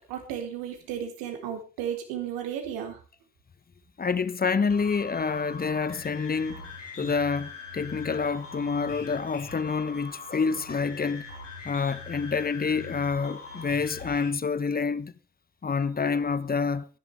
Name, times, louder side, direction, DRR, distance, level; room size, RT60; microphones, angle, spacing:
voice 1, 0.0-3.0, right 9 dB, 70° right, 3.9 m, -34 dB
voice 2, 4.0-6.7 7.0-11.2 11.6-15.1 15.6-16.9, left 5 dB, 25° left, 1.3 m, -27 dB
sound 1, 4.7-14.3, left 4 dB, 90° left, 3.2 m, -42 dB
24.0 x 11.0 x 3.4 m
figure-of-eight pair, 50°, 36 cm